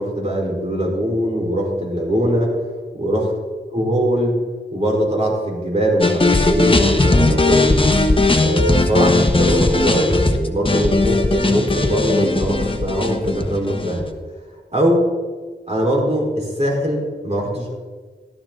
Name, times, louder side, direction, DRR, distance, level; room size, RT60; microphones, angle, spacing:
voice 1, 0.0-2.6 3.0-3.2 3.7-4.4 4.7-7.9 8.4-14.1 14.7-15.1 15.7-17.8, equal, 35° right, -2 dB, 4.5 m, -21 dB
sound 1, 6.0-14.1, left 2 dB, 30° left, 1.2 m, -17 dB
15.0 x 12.0 x 3.9 m, 1.4 s
wide cardioid pair, 55°, 19 cm